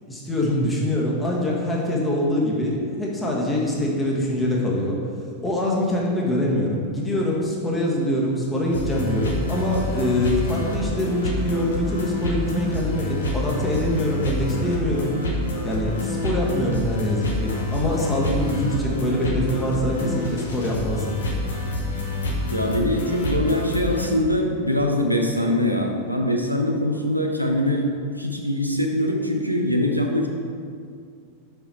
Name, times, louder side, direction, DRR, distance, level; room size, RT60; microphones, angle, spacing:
voice 1, 0.1-5.0 5.4-15.1 15.6-21.2, left 1 dB, 10° left, -3 dB, 1.4 m, -24 dB
sound 1, 8.7-24.1, left 1 dB, 70° left, 1.1 m, -27 dB
voice 2, 22.5-27.9 28.2-30.3, left 1 dB, 90° right, 2 dB, 0.6 m, -23 dB
5.7 x 5.5 x 4.4 m, 2.2 s
figure-of-eight pair, 90°, 0 cm